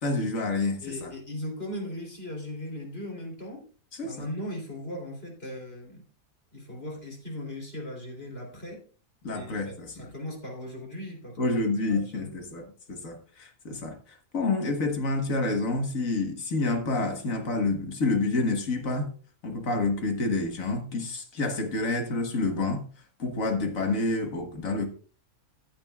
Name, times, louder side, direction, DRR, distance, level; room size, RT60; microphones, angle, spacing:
voice 1, 0.0-1.1 3.9-4.2 9.2-10.1 11.4-14.0 14.3-19.1 19.4-22.8 23.2-24.9, left 3 dB, 65° left, 1.8 m, -28 dB
voice 2, 0.8-3.6 4.0-6.0 6.5-8.8 9.3-11.4 11.9-12.3, left 1 dB, 40° left, 3.6 m, -38 dB
14.5 x 9.0 x 2.4 m
omnidirectional pair, 1.6 m